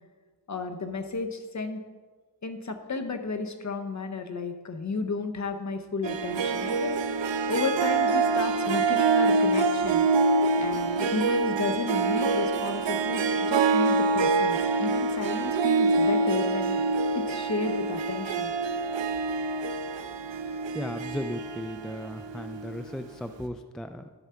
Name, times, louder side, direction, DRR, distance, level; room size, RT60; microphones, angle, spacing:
voice 1, 0.5-1.8 2.4-10.0 10.6-16.8 17.3-18.5, left 4 dB, 40° left, 6 dB, 0.9 m, -33 dB
Harp, 6.0-22.8, right 3 dB, 85° right, 0.8 m, -26 dB
voice 2, 20.7-24.1, equal, ahead, 8 dB, 0.3 m, -36 dB
13.0 x 4.9 x 5.7 m, 1.4 s
wide cardioid pair, 110°, 43 cm